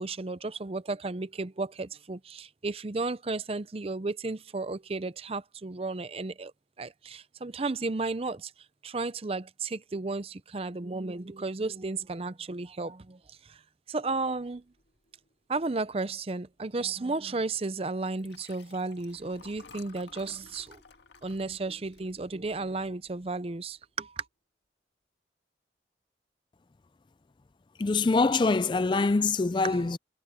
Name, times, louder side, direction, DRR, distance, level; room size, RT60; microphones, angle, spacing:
voice 1, 0.0-6.5 6.8-8.5 8.8-13.6 13.9-14.6 15.5-20.8 21.2-24.3 29.6-29.9, right 3 dB, 35° right, 0.6 m, -33 dB
sound 1, 14.0-17.0 17.4-17.5 18.9-24.0, left 1 dB, 65° left, 4.8 m, -63 dB
Liquid, 18.1-22.7 23.2-23.5 23.7-23.8, left 5 dB, 85° left, 1.7 m, -54 dB
voice 2, 27.8-30.0, left 3 dB, 25° left, 0.3 m, -24 dB
head